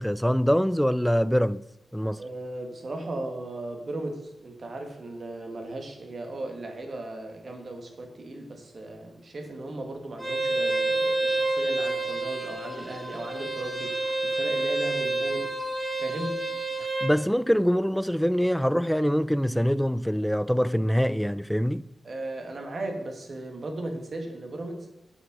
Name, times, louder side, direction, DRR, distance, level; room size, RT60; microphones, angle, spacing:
voice 1, 0.0-1.6 1.9-2.2 17.0-21.9, equal, ahead, 0.4 m, -24 dB
voice 2, 2.2-15.5 16.0-16.4 18.1-18.2 22.0-25.0, right 2 dB, 55° right, 2.0 m, -37 dB
Bowed string instrument, 10.2-17.1, right 2 dB, 15° right, 3.0 m, -28 dB
7.9 x 6.4 x 6.1 m
cardioid pair, 60°, 0 cm